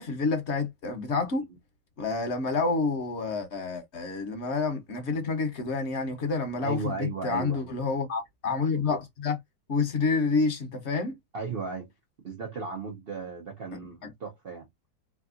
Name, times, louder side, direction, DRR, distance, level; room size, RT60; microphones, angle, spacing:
voice 1, 0.0-1.4 2.0-9.4 9.7-11.2 14.0-14.1, left 4 dB, 50° left, 0.9 m, -28 dB
voice 2, 6.6-7.7 11.3-11.9 12.2-14.7, right 4 dB, 90° right, 0.5 m, -35 dB
3.4 x 2.7 x 2.4 m
omnidirectional pair, 1.9 m